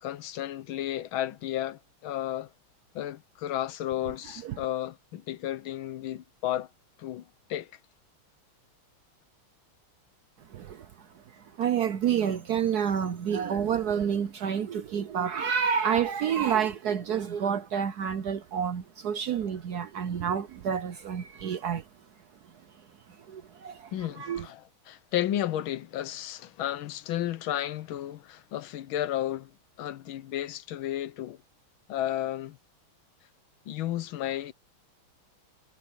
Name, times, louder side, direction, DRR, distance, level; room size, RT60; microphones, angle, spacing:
voice 1, 0.0-2.5 2.9-6.7 7.0-7.2 7.5-7.7 23.9-29.5 29.8-31.4 31.9-32.6 33.7-34.5, left 12 dB, 75° left, 1.5 m, -33 dB
voice 2, 10.5-11.1 11.3-21.9 23.3-24.5, right 8 dB, 65° right, 1.0 m, -29 dB
omnidirectional pair, 2.3 m